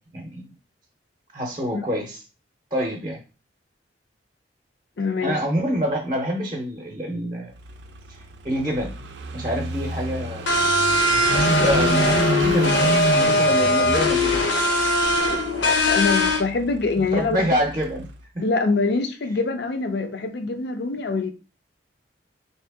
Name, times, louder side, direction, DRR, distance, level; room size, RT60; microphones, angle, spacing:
voice 1, 0.1-0.5 1.3-2.2 2.7-3.2 5.2-7.5 8.1-9.1 9.3-10.4 11.3-14.5 17.0-18.1 18.3-18.4, equal, 25° right, 0.6 m, -27 dB
voice 2, 5.0-5.4 15.2-17.6 18.4-21.3, left 3 dB, 60° left, 0.5 m, -25 dB
Car passing by / Idling, 7.6-18.2, right 3 dB, 65° right, 0.5 m, -30 dB
sound 1, 10.5-16.4, left 1 dB, 90° left, 0.8 m, -20 dB
3.4 x 2.8 x 3.4 m
head